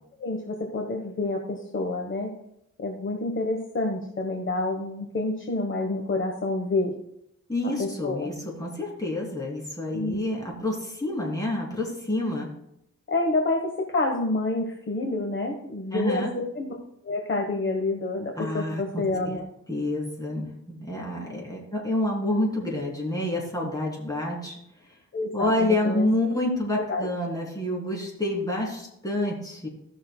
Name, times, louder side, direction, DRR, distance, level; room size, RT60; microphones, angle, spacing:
voice 1, 0.2-2.3 2.8-7.0 7.8-8.3 9.9-10.2 13.1-16.7 17.0-19.5 25.1-26.1 26.7-27.1, left 2 dB, 40° left, 1 dB, 1.2 m, -28 dB
voice 2, 7.5-12.5 15.9-16.3 18.4-19.3 19.7-24.5 25.3-29.7, left 1 dB, 10° left, -3 dB, 3.0 m, -28 dB
16.0 x 6.2 x 2.3 m, 0.79 s
wide cardioid pair, 105°, 30 cm